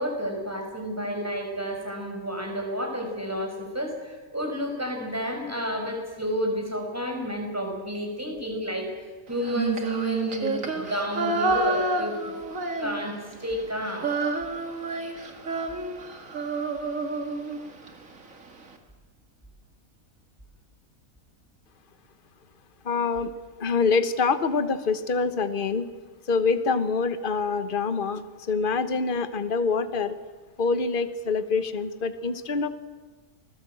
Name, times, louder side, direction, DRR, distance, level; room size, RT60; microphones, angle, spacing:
voice 1, 0.0-8.9 9.3-12.3 12.8-14.1, equal, 10° right, 2 dB, 5.2 m, -31 dB
Female singing, 9.4-13.3 13.6-17.9, right 3 dB, 65° right, 2.5 m, -29 dB
voice 2, 22.8-23.3 23.6-25.9 26.3-30.2 30.6-32.7, left 4 dB, 40° left, 11 dB, 1.3 m, -25 dB
29.5 x 20.5 x 7.8 m, 1.3 s
omnidirectional pair, 1.5 m